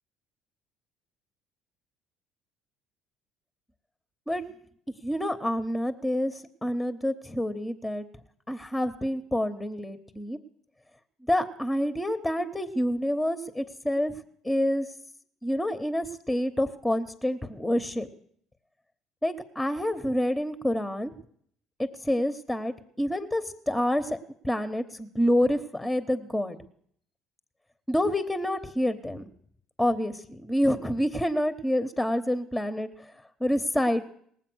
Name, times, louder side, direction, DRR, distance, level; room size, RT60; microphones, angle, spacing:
voice 1, 5.0-6.3 6.6-8.0 8.5-10.4 11.3-14.1 14.4-14.9 15.4-18.1 19.2-21.1 21.8-24.2 24.4-26.6 27.9-29.2 29.8-32.9 33.4-34.1, equal, 10° left, 10 dB, 1.0 m, -27 dB
19.0 x 7.5 x 6.2 m, 0.64 s
hypercardioid pair, 65°, 0 cm